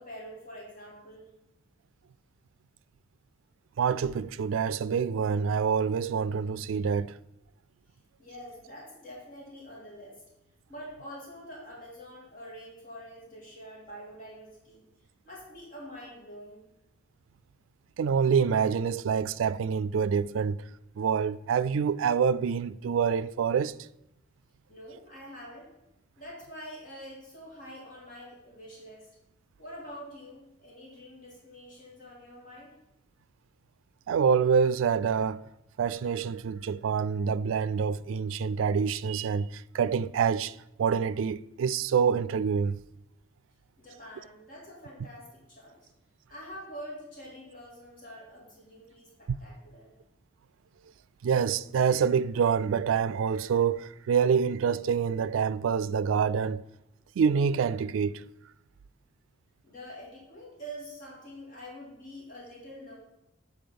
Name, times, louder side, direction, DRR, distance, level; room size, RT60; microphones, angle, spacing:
voice 1, 0.0-1.3 8.2-10.2 10.7-14.9 15.2-16.7 24.7-25.7 26.2-29.1 29.6-32.7 43.8-45.9 46.3-49.9 59.6-63.0, equal, 45° left, 2.3 m, -46 dB
voice 2, 3.8-7.2 18.0-20.6 21.0-23.7 34.1-35.4 35.8-42.8 51.2-56.6 57.2-58.2, right 6 dB, 90° right, 0.3 m, -26 dB
7.7 x 4.0 x 5.2 m
head